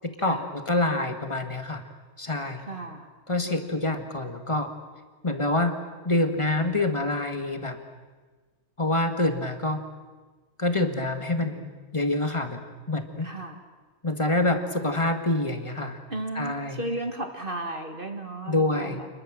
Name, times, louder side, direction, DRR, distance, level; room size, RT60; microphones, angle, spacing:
voice 1, 0.0-1.8 2.2-2.7 3.3-4.7 5.2-5.8 6.1-7.8 8.8-9.8 10.6-12.6 12.9-13.3 14.0-16.0 16.3-16.8 18.5-19.0, left 2 dB, 20° left, 6 dB, 1.9 m, -26 dB
voice 2, 2.7-3.1 3.5-4.0 13.2-13.6 16.1-19.1, right 2 dB, 35° right, 4 dB, 2.0 m, -35 dB
28.0 x 21.5 x 7.6 m, 1.4 s
omnidirectional pair, 1.5 m